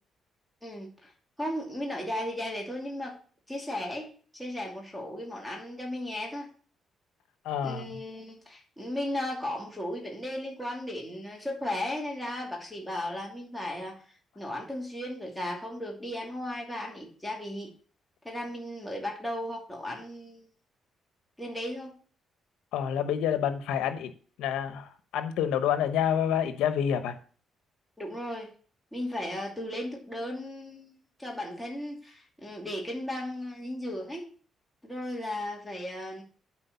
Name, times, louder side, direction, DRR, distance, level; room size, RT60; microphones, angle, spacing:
voice 1, 0.6-1.1 1.4-3.2 3.5-6.5 7.6-14.0 14.4-17.7 18.2-20.5 21.4-21.9 28.0-28.5 28.9-34.3 34.8-36.2, left 1 dB, 5° left, -2 dB, 2.6 m, -36 dB
voice 2, 7.4-8.0 22.7-24.1 24.4-27.2, left 9 dB, 90° left, 9 dB, 1.0 m, -28 dB
8.5 x 4.5 x 6.8 m, 0.42 s
cardioid pair, 90°, 0 cm